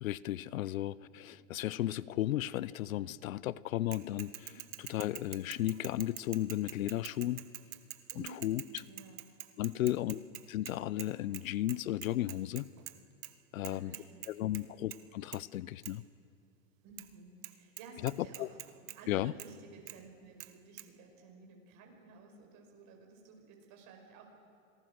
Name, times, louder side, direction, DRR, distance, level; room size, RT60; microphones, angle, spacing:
voice 1, 0.0-4.5 4.9-7.4 8.4-8.8 9.6-10.2 10.5-12.7 13.5-13.9 14.3-16.0 18.0-18.1 18.4-18.5 19.1-19.3, left 14 dB, 90° left, 21 dB, 0.7 m, -34 dB
Bicycle / Mechanisms, 3.9-11.1 11.3-11.4 11.7-12.9 13.2-13.3 13.6-14.6 14.9-15.1 15.3-15.4 15.8-15.9 17.0-17.1 17.4-17.5 17.8-19.0 19.4-19.5 19.9-20.0 20.4-20.5 20.8-20.9, right 15 dB, 75° right, 1.3 m, -45 dB
voice 2, 8.6-9.2 9.7-10.1 13.7-14.7 16.8-18.5 18.8-24.3, right 4 dB, 45° right, 2 dB, 5.5 m, -54 dB
26.0 x 19.0 x 6.3 m, 2.6 s
hypercardioid pair, 125°, 40 cm